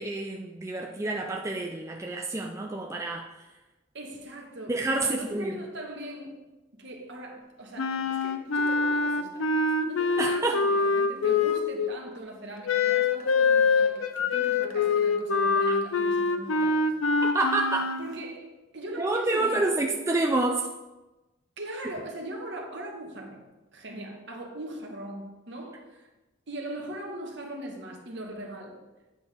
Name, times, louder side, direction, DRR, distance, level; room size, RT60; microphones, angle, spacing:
voice 1, 0.0-3.3 4.7-5.6 10.2-10.6 17.3-17.9 19.0-20.7, right 2 dB, 15° right, 0 dB, 0.4 m, -28 dB
voice 2, 3.9-6.4 6.8-17.2 18.0-19.8 21.6-26.1 26.5-28.8, right 1 dB, 60° right, 1 dB, 1.3 m, -40 dB
Wind instrument woodwind instrument, 7.8-11.9 12.6-18.1, left 4 dB, 80° left, 0.6 m, -25 dB
9.3 x 6.2 x 3.5 m, 1.1 s
head